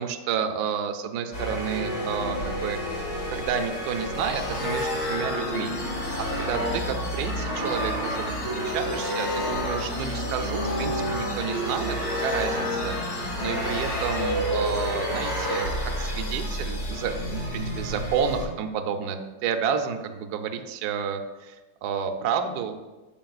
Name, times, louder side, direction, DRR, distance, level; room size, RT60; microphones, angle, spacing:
voice 1, 0.0-2.8 3.3-5.7 6.2-22.8, right 7 dB, 65° right, 6 dB, 1.0 m, -30 dB
sound 1, 1.3-18.4, equal, 55° left, 3.3 m, -29 dB
15.0 x 5.2 x 2.4 m, 1.2 s
omnidirectional pair, 2.3 m